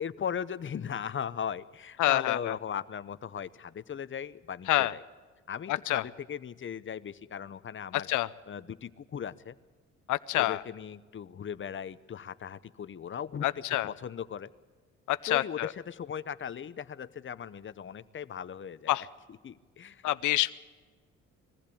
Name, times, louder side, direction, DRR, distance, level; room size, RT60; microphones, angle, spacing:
voice 1, 0.0-5.0 5.5-8.1 8.5-9.5 10.3-13.4 13.8-14.5 15.3-19.1 19.4-20.1, left 8 dB, 40° left, 16 dB, 0.8 m, -38 dB
voice 2, 2.0-2.5 4.7-4.9 5.7-6.0 7.9-8.3 10.1-10.6 13.4-13.9 15.1-15.7 18.9-19.0 20.0-20.5, left 15 dB, 75° left, 14 dB, 0.6 m, -27 dB
21.5 x 15.0 x 8.5 m, 1.4 s
cardioid pair, 90°, 30 cm